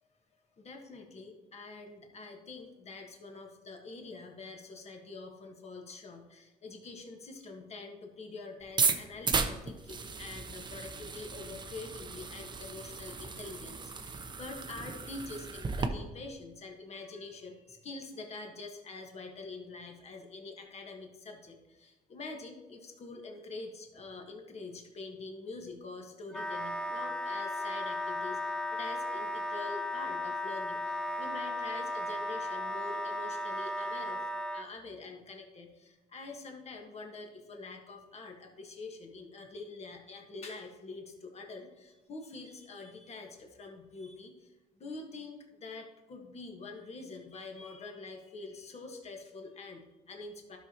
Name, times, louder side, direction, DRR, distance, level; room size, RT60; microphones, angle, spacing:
voice 1, 0.4-50.6, left 3 dB, 40° left, 3 dB, 1.4 m, -46 dB
sound 1, 8.6-15.9, right 4 dB, 25° right, 0.7 m, -35 dB
Wind instrument woodwind instrument, 26.3-34.7, left 1 dB, 5° left, 0.4 m, -35 dB
12.0 x 6.2 x 2.9 m, 1.1 s
cardioid pair, 110°, 17 cm